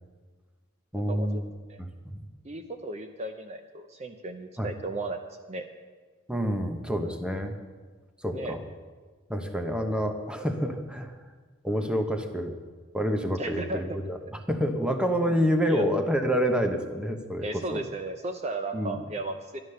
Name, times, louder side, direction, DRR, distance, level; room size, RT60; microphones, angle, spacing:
voice 1, 0.9-1.5 2.0-2.3 4.6-4.7 6.3-7.6 8.2-8.6 9.3-11.1 11.6-12.6 12.9-17.8 18.7-19.0, equal, 5° right, 5 dB, 0.9 m, -28 dB
voice 2, 2.4-5.2 5.5-5.6 8.3-8.5 13.4-14.0 15.3-15.4 15.7-15.9 17.4-19.6, right 2 dB, 30° right, 6 dB, 0.6 m, -35 dB
11.5 x 11.0 x 6.7 m, 1.5 s
head